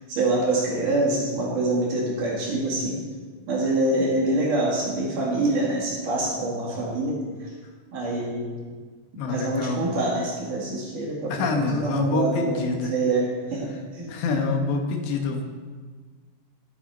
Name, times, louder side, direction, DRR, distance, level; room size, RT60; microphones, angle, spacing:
voice 1, 0.1-3.0 3.5-7.5 7.9-8.5 9.2-14.1, right 2 dB, 55° right, -5 dB, 3.3 m, -25 dB
voice 2, 9.2-9.8 11.3-12.9 14.1-15.4, left 4 dB, 85° left, 3 dB, 3.3 m, -26 dB
11.5 x 8.9 x 4.2 m, 1.5 s
omnidirectional pair, 4.9 m